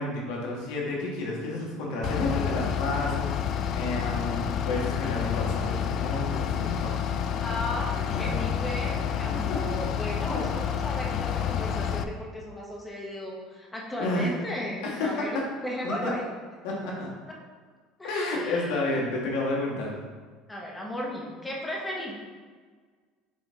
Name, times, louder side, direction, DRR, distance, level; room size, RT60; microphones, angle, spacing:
voice 1, 0.0-7.1 8.1-8.4 9.3-9.6 10.2-10.4 14.0-14.3 14.8-15.4 15.8-16.1 16.6-17.1 18.0-19.9, left 2 dB, 75° left, -2 dB, 1.6 m, -31 dB
Bus / Idling, 2.0-12.0, left 8 dB, 45° left, 0.4 m, -29 dB
voice 2, 7.4-16.3 18.0-18.7 20.5-22.1, left 1 dB, 10° left, -2 dB, 1.2 m, -35 dB
6.2 x 4.1 x 3.8 m, 1.5 s
cardioid pair, 135°, 0 cm